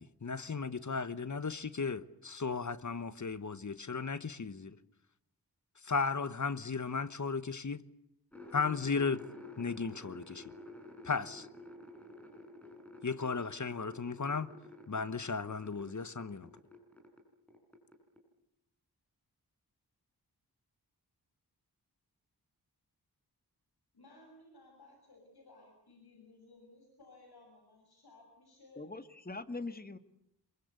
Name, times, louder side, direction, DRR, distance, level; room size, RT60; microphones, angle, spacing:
voice 1, 0.0-4.8 5.8-7.8 8.5-9.2 9.6-10.5 11.0-11.5 13.0-14.5 14.9-16.5, left 5 dB, 45° left, 1.2 m, -35 dB
sound 1, 8.3-17.2 17.5-18.2, left 1 dB, 5° left, 8.0 m, -51 dB
voice 2, 23.9-28.9, left 2 dB, 75° left, 7.2 m, -59 dB
voice 3, 28.8-30.0, left 3 dB, 25° left, 1.7 m, -42 dB
27.0 x 23.5 x 8.3 m
wide cardioid pair, 80°, 39 cm